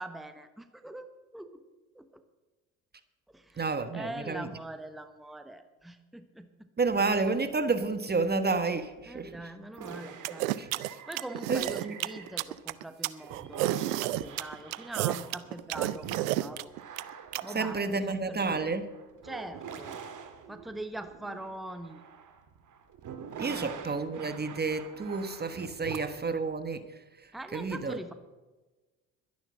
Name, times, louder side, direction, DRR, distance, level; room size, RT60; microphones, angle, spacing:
voice 1, 0.0-1.6 1.9-2.2 3.3-3.7 3.9-6.7 9.0-10.5 10.9-13.6 14.0-16.7 17.4-18.6 19.2-20.0 20.5-22.0 23.4-23.8 27.3-28.1, right 1 dB, ahead, 1.1 m, -43 dB
voice 2, 3.6-4.5 6.8-9.3 10.6-10.7 11.5-11.9 17.5-18.9 23.4-26.8 27.5-28.0, right 4 dB, 25° right, 1.2 m, -30 dB
sound 1, 9.7-12.7 13.1-26.3, right 6 dB, 50° right, 1.9 m, -45 dB
sound 2, 10.2-17.4, right 16 dB, 80° right, 0.6 m, -31 dB
12.0 x 10.5 x 7.4 m
hypercardioid pair, 65°, 40 cm